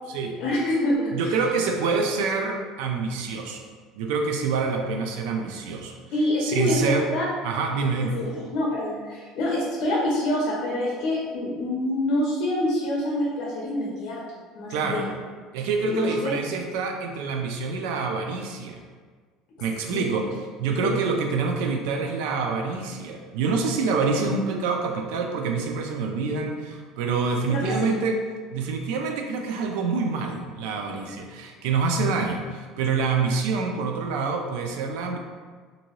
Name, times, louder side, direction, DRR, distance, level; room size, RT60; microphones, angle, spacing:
voice 1, 0.4-1.4 6.1-7.2 8.0-15.1 15.9-16.3 19.9-20.2 20.8-21.0 27.5-28.0, left 1 dB, 55° left, -4 dB, 0.6 m, -26 dB
voice 2, 1.1-3.6 4.0-6.0 6.4-7.0 7.4-8.2 14.7-15.1 15.5-18.8 19.6-20.3 20.6-28.2 28.5-35.2, right 4 dB, 80° right, 3 dB, 0.4 m, -26 dB
2.7 x 2.6 x 3.0 m, 1.5 s
cardioid pair, 155°, 0 cm